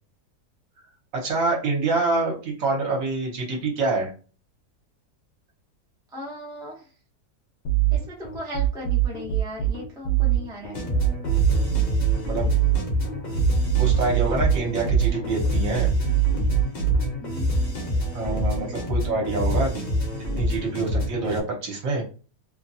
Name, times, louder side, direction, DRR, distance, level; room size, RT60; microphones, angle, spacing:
voice 1, 1.1-4.1 12.3-12.5 13.8-15.9 18.1-19.8 20.4-22.0, right 3 dB, 60° right, -1 dB, 1.2 m, -26 dB
voice 2, 6.1-6.8 7.9-10.8 17.2-17.8, equal, 5° right, -4 dB, 0.3 m, -37 dB
sound 1, 7.6-17.1, right 14 dB, 75° left, 1.1 m, -23 dB
sound 2, 10.7-21.4, left 1 dB, 40° left, 0.7 m, -26 dB
2.8 x 2.2 x 2.6 m, 0.36 s
omnidirectional pair, 1.7 m